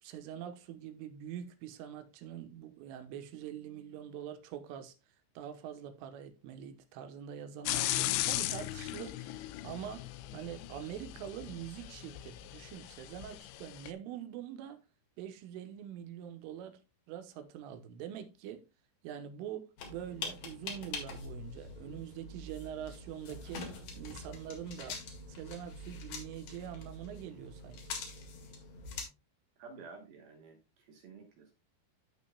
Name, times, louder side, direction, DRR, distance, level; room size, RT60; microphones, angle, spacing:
voice 1, 0.0-4.9 5.4-14.8 15.2-16.8 17.1-18.6 19.0-23.7 24.0-25.0 25.3-27.9, right 10 dB, 90° right, 3.4 m, -44 dB
sound 1, 7.7-13.9, left 16 dB, 85° left, 2.5 m, -37 dB
sound 2, 19.8-29.0, left 3 dB, 55° left, 2.9 m, -44 dB
voice 2, 29.6-31.5, right 4 dB, 70° right, 2.4 m, -52 dB
14.5 x 5.5 x 2.2 m
omnidirectional pair, 5.6 m